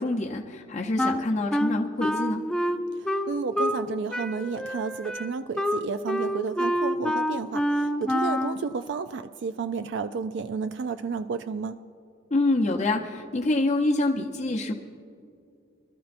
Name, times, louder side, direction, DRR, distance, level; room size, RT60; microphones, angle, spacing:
voice 1, 0.0-2.4 12.3-14.7, left 2 dB, 40° left, 0 dB, 0.7 m, -26 dB
Wind instrument woodwind instrument, 1.0-3.9 4.1-8.6, equal, 5° left, 0.4 m, -27 dB
voice 2, 3.0-11.8, right 5 dB, 65° right, 10 dB, 0.4 m, -32 dB
24.5 x 12.5 x 2.6 m, 2.5 s
head